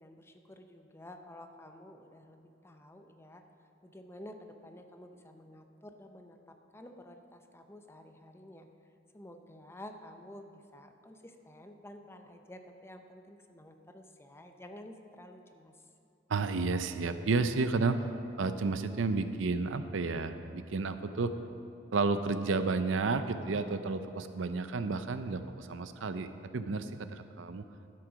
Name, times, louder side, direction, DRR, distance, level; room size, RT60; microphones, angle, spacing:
voice 1, 0.0-3.4 3.8-8.7 9.1-15.7, left 1 dB, 15° left, 5 dB, 0.6 m, -51 dB
voice 2, 16.3-18.0 18.4-21.3 21.9-26.3 26.5-27.6, right 4 dB, 80° right, 10 dB, 0.5 m, -31 dB
12.0 x 7.7 x 5.1 m, 2.7 s
head